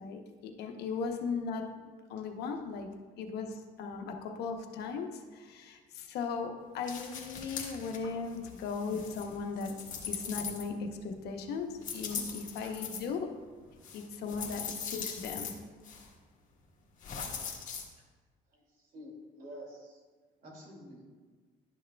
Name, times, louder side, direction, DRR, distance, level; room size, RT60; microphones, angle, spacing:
voice 1, 0.0-2.9 3.2-9.7 10.1-13.3 13.9-15.5, left 5 dB, 75° left, 4 dB, 0.9 m, -37 dB
sound 1, 6.8-8.0 8.3-11.0 11.8-13.0 13.8-15.5 15.8-16.1 17.0-17.8, left 6 dB, 50° left, 1.4 m, -40 dB
voice 2, 8.0-8.5 12.1-12.2 12.6-12.8 13.7-14.3 17.4-17.7 18.5-20.0 20.4-21.1, equal, 60° right, -1 dB, 2.3 m, -51 dB
11.5 x 6.3 x 2.3 m, 1.4 s
cardioid pair, 110°, 17 cm